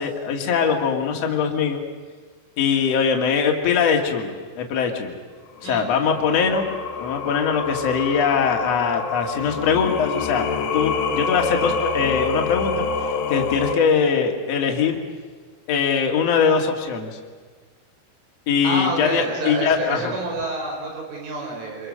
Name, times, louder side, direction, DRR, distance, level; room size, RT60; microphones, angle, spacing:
voice 1, 0.0-1.8 2.6-5.1 5.6-6.7 7.0-10.5 10.7-12.9 13.3-15.0 15.7-17.1 18.5-20.1, left 6 dB, 50° left, 2 dB, 2.1 m, -21 dB
Singing, 5.6-13.8, left 4 dB, 65° left, 3.4 m, -27 dB
voice 2, 18.6-21.9, right 2 dB, 80° right, 1 dB, 7.4 m, -28 dB
27.5 x 23.0 x 6.6 m, 1.5 s
omnidirectional pair, 5.9 m